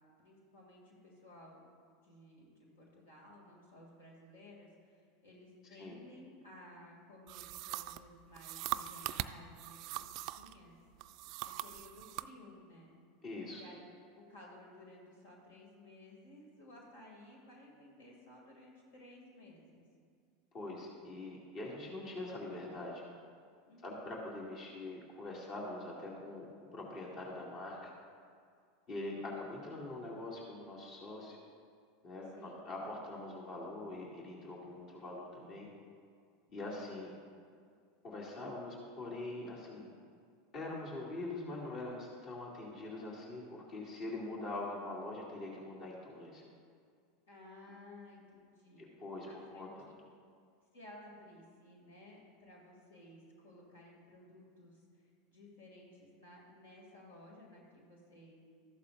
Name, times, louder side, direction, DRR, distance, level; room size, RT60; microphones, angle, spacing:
voice 1, 0.2-1.6 2.0-10.8 11.0-13.0 13.5-13.9 14.1-19.8 23.7-24.2 32.3-32.7 47.3-48.9 49.2-49.9 50.7-58.4, left 1 dB, 75° left, -2 dB, 2.5 m, -56 dB
sound 1, 7.3-10.6 11.0-12.3, right 15 dB, 50° right, 0.3 m, -41 dB
voice 2, 13.2-13.6 20.5-23.0 23.8-27.9 28.9-31.4 32.0-35.7 36.5-37.1 38.0-39.9 40.5-46.4 48.8-49.3 49.5-49.9, left 2 dB, 45° left, -4 dB, 2.4 m, -43 dB
14.0 x 11.5 x 2.6 m, 2.2 s
hypercardioid pair, 85°, 0 cm